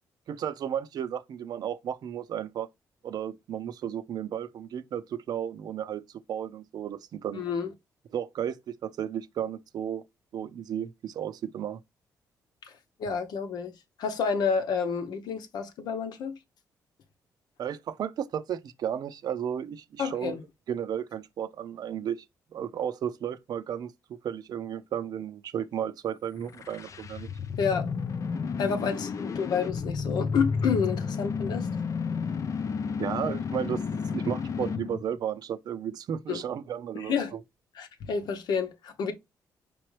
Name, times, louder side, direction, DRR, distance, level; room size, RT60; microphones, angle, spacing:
voice 1, 0.3-2.7 3.0-6.0 6.3-7.4 8.1-10.0 10.3-11.8 17.6-20.4 20.7-22.2 22.5-23.9 24.2-27.3 33.0-37.4, right 9 dB, 70° right, 0.6 m, -33 dB
voice 2, 7.3-7.7 12.7-13.7 14.0-16.3 20.0-20.4 27.6-27.9 28.6-31.7 36.3-36.4 36.9-37.4 37.7-39.1, left 6 dB, 75° left, 0.9 m, -29 dB
sound 1, 26.4-35.0, left 5 dB, 50° left, 0.5 m, -32 dB
4.9 x 3.0 x 3.2 m
cardioid pair, 80°, 7 cm